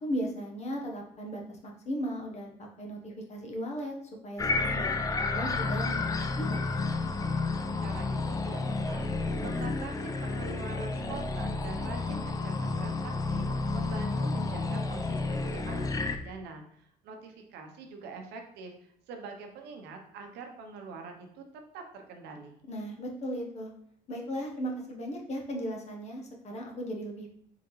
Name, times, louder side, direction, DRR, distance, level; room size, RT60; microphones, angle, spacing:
voice 1, 0.0-3.9 4.2-6.8 9.5-9.7 22.7-23.7 24.1-27.3, equal, 40° left, 1 dB, 1.0 m, -37 dB
sound 1, 4.4-16.2, left 3 dB, 20° left, 0.4 m, -31 dB
voice 2, 7.8-8.6 8.9-9.0 9.4-21.4 21.7-22.6, right 4 dB, 85° right, 3 dB, 0.8 m, -44 dB
3.8 x 3.6 x 3.1 m, 0.67 s
cardioid pair, 110°, 17 cm